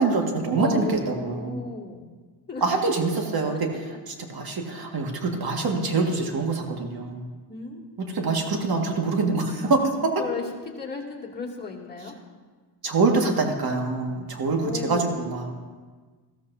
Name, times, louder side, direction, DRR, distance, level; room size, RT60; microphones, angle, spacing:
voice 1, 0.0-1.6 2.6-3.7 4.1-7.3 8.0-10.2 12.8-15.5, right 3 dB, 50° right, 2 dB, 2.0 m, -25 dB
voice 2, 0.6-2.1 2.5-2.6 7.5-7.8 10.2-12.2 14.6-15.2, left 4 dB, 20° left, -3 dB, 2.6 m, -34 dB
15.0 x 13.5 x 2.7 m, 1.4 s
supercardioid pair, 70°, 48 cm